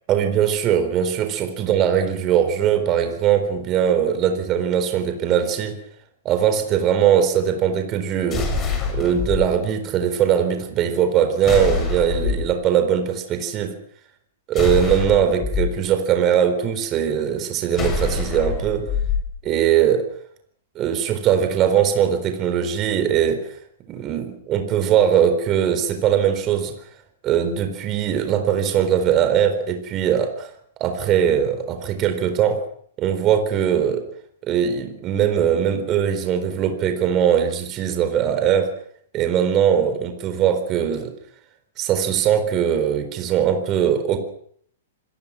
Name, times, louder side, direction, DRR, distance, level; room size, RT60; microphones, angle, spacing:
voice 1, 0.1-5.8 6.2-8.5 8.9-13.7 14.5-18.9 19.4-20.1 20.7-23.6 23.9-26.7 27.2-30.5 30.8-32.6 33.0-34.1 34.4-38.7 39.1-41.1 41.8-44.2, right 9 dB, 30° right, 7 dB, 4.2 m, -20 dB
sound 1, 8.3-9.4 11.4-12.5 14.5-15.6 17.7-19.2, left 5 dB, 25° left, 7.8 m, -24 dB
26.5 x 21.0 x 6.2 m, 0.63 s
figure-of-eight pair, 110°, 0 cm